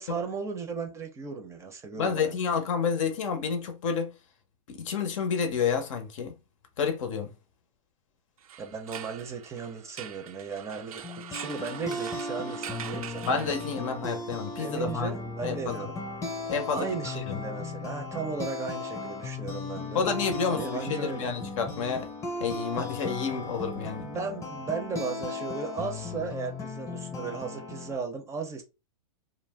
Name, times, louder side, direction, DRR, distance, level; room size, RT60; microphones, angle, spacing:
voice 1, 0.0-2.3 8.6-11.0 11.3-13.4 14.6-15.9 16.7-20.1 20.5-21.3 24.0-28.6, right 5 dB, 15° right, 0.5 m, -36 dB
voice 2, 2.0-4.1 4.7-6.3 6.8-7.3 13.3-15.1 15.4-15.9 16.5-16.9 17.3-17.4 19.9-22.1 22.4-24.1, left 6 dB, 65° left, 0.7 m, -29 dB
sound 1, 8.4-14.1, right 9 dB, 85° right, 0.5 m, -43 dB
sound 2, 11.0-28.0, left 3 dB, 15° left, 0.8 m, -36 dB
2.5 x 2.0 x 3.3 m
hypercardioid pair, 130°, 18 cm